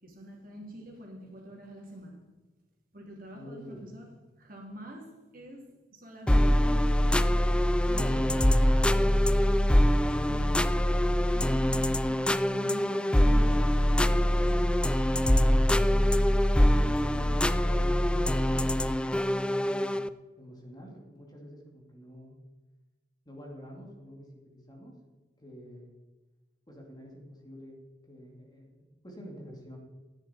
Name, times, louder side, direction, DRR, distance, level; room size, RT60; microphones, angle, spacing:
voice 1, 0.0-2.2 2.9-9.1 10.3-14.8 15.2-16.2 16.6-17.4, equal, 55° right, 0 dB, 2.9 m, -46 dB
voice 2, 3.3-3.9 7.9-10.8 17.1-22.4 23.3-25.0 25.4-25.9 26.7-29.8, equal, 25° left, 0 dB, 2.4 m, -47 dB
sound 1, 6.3-20.1, equal, 5° left, 0.3 m, -24 dB
13.0 x 10.0 x 4.3 m, 1.2 s
head